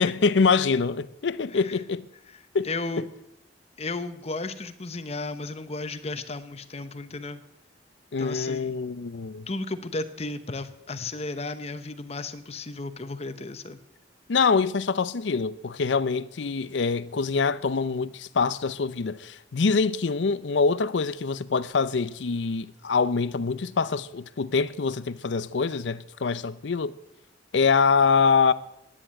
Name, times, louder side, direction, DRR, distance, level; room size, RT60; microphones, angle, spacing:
voice 1, 0.0-2.1 2.5-2.7 8.1-9.5 14.3-27.0 27.5-28.5, left 5 dB, 80° left, 0.6 m, -24 dB
voice 2, 2.3-3.1 3.8-7.4 8.2-8.8 9.5-13.8, left 3 dB, 35° left, 0.9 m, -34 dB
10.0 x 10.0 x 8.7 m
head